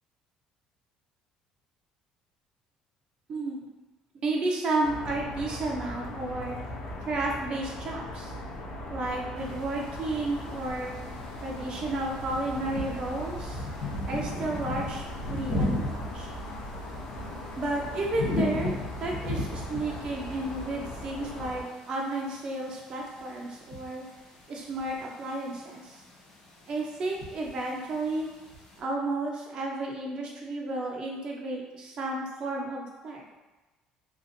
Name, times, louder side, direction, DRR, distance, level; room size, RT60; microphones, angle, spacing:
voice 1, 3.3-3.7 4.2-6.6 7.1-8.3 8.9-10.9 11.4-13.6 14.0-16.3 17.6-18.7 19.0-24.0 24.5-26.0 26.7-28.3 28.8-33.2, right 2 dB, 45° right, -1 dB, 0.6 m, -32 dB
sound 1, 4.8-21.6, left 1 dB, 70° left, 0.5 m, -39 dB
sound 2, 9.4-28.8, left 1 dB, 85° left, 0.8 m, -38 dB
2.8 x 2.4 x 2.6 m, 1.2 s
cardioid pair, 110°, 2 cm